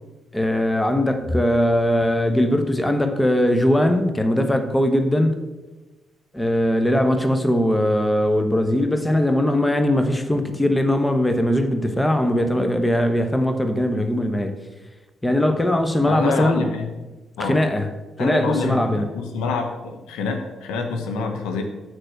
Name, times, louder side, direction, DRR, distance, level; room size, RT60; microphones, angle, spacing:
voice 1, 0.3-5.4 6.3-14.6 15.2-16.6 17.4-17.9 18.2-19.1, left 1 dB, 15° left, 7 dB, 1.0 m, -20 dB
voice 2, 16.1-16.9 17.4-17.6 18.2-21.6, left 4 dB, 65° left, 4 dB, 0.9 m, -27 dB
6.6 x 6.5 x 7.5 m, 1.2 s
figure-of-eight pair, 40°, 0 cm